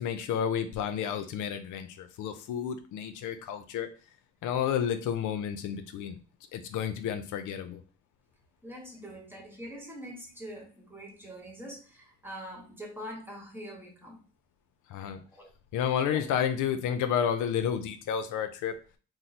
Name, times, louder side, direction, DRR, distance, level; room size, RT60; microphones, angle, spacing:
voice 1, 0.0-3.9 4.4-6.2 6.5-7.8 14.9-15.2 15.7-18.8, left 8 dB, 80° left, 8 dB, 0.5 m, -31 dB
voice 2, 8.6-14.2 15.3-15.5 16.1-16.2, equal, 5° right, 0 dB, 1.1 m, -44 dB
3.0 x 2.0 x 4.0 m, 0.37 s
cardioid pair, 90°, 30 cm